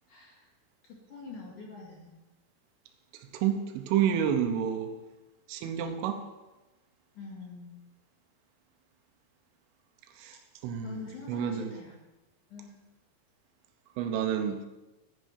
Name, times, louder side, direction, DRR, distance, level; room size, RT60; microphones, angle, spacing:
voice 1, 0.1-0.5 0.9-2.1 7.1-7.8 10.8-11.9 12.5-12.8, left 4 dB, 50° left, -3 dB, 2.9 m, -45 dB
voice 2, 3.1-4.9 5.5-6.3 10.2-11.8 14.0-14.7, right 9 dB, 80° right, 6 dB, 3.6 m, -30 dB
10.5 x 9.8 x 6.5 m, 1.1 s
omnidirectional pair, 5.8 m